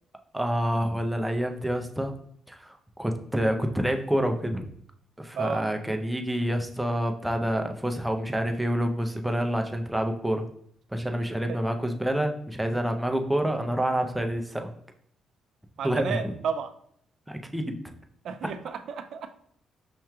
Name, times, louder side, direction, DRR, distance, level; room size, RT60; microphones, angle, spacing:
voice 1, 0.3-2.1 2.5-4.6 5.2-10.4 10.9-14.7 15.8-16.3 17.3-17.8 18.4-18.5, equal, 5° right, 4 dB, 0.5 m, -28 dB
voice 2, 15.8-16.7 18.2-19.3, right 6 dB, 65° right, 8 dB, 0.4 m, -32 dB
5.6 x 3.0 x 2.3 m, 0.66 s
cardioid pair, 90°, 0 cm